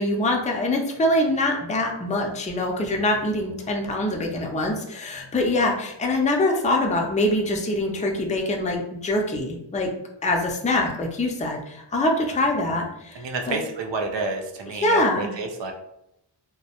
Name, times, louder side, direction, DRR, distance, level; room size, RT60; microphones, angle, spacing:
voice 1, 0.0-9.9 10.2-13.6 14.7-15.4, left 1 dB, 15° left, 1 dB, 0.3 m, -24 dB
voice 2, 13.2-15.7, right 3 dB, 65° right, 4 dB, 0.5 m, -30 dB
2.2 x 2.0 x 2.8 m, 0.80 s
wide cardioid pair, 60°, 48 cm